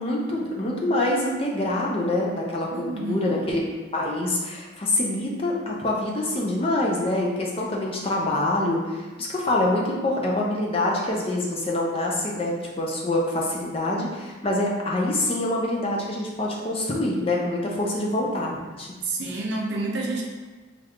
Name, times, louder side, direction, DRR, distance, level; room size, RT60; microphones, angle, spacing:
voice 1, 0.0-3.6 3.9-18.9, left 1 dB, 30° left, -2 dB, 0.5 m, -25 dB
voice 2, 2.7-3.5 19.0-20.2, right 2 dB, 60° right, -2 dB, 0.5 m, -29 dB
3.2 x 2.4 x 3.2 m, 1.3 s
head